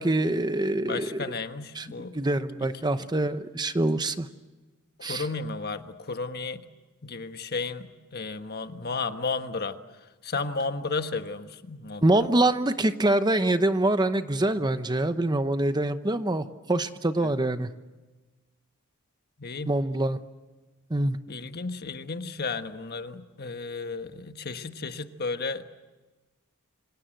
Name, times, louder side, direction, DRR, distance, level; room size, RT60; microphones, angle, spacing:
voice 1, 0.0-1.2 1.7-4.3 5.0-5.3 12.0-17.7 19.7-20.2 20.9-21.2, right 1 dB, 20° right, 10 dB, 0.9 m, -25 dB
voice 2, 0.8-2.2 5.0-6.6 7.0-9.8 10.2-12.1 17.2-17.3 19.4-19.7 21.3-25.6, left 4 dB, 45° left, 8 dB, 1.3 m, -33 dB
27.5 x 26.5 x 7.8 m, 1.2 s
head